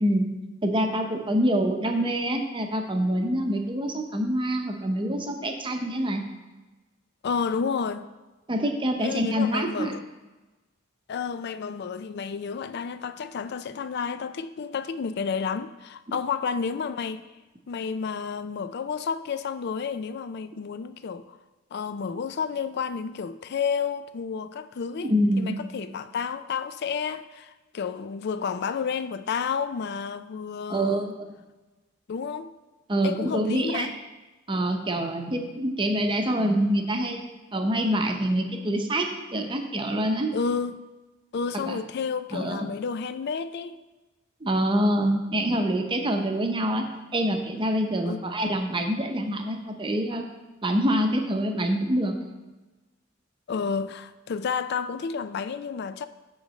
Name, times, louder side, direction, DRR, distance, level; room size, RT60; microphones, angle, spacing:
voice 1, 0.6-6.2 8.5-9.9 25.0-25.6 30.7-31.0 32.9-33.9 34.5-37.2 37.5-40.3 41.5-41.8 42.3-42.7 44.4-46.9 47.1-50.3 50.6-52.1, right 1 dB, 25° right, 0.8 m, -25 dB
voice 2, 7.2-8.1 9.0-10.0 11.1-17.3 17.7-21.4 21.7-31.1 32.1-32.5 33.0-34.0 40.3-40.8 41.3-43.8 48.1-48.2 53.5-56.1, left 6 dB, 55° left, 0.4 m, -31 dB
7.8 x 3.9 x 6.4 m
head